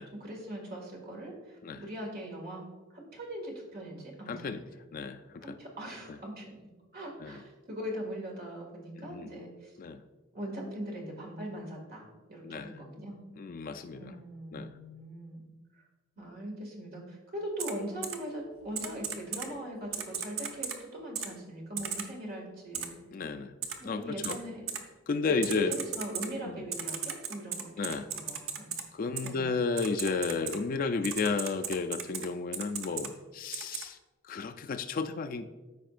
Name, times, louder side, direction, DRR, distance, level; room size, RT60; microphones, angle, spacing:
voice 1, 0.2-2.6 2.9-4.5 5.4-9.7 10.3-13.2 13.9-15.4 15.7-15.8 16.2-22.9 23.8-24.7 25.1-28.7 29.2-29.5, right 1 dB, 50° right, -1 dB, 2.0 m, -41 dB
voice 2, 4.3-5.5 7.2-7.4 9.0-9.4 9.8-10.0 12.4-12.7 13.4-14.1 14.5-14.8 23.1-23.5 23.8-24.4 25.1-25.8 26.4-26.7 27.8-28.1 28.9-34.0 34.3-35.5, left 4 dB, 45° left, 8 dB, 0.4 m, -33 dB
Typing, 17.6-17.7 18.0-18.2 18.8-19.5 19.9-20.8 21.2-21.3 21.8-22.1 22.7-22.9 23.6-23.7 24.2-24.4 24.7-24.8 25.4-26.3 26.7-28.8 29.2-29.3 29.8-30.6 31.0-32.3 32.5-33.1 33.5-33.8, right 7 dB, 85° right, 0.9 m, -35 dB
13.5 x 5.0 x 2.5 m, 1.2 s
head